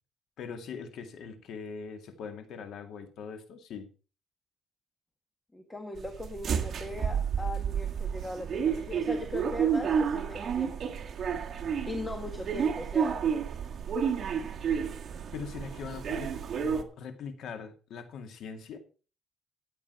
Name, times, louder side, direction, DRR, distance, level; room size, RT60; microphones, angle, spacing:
voice 1, 0.4-3.9 15.3-18.8, left 6 dB, 75° left, 7 dB, 2.3 m, -41 dB
voice 2, 5.5-10.9 11.9-13.3, left 1 dB, 10° left, 6 dB, 1.6 m, -39 dB
sound 1, 6.0-16.8, right 7 dB, 50° right, 1.7 m, -31 dB
14.0 x 9.0 x 4.7 m, 0.35 s
cardioid pair, 125°, 0 cm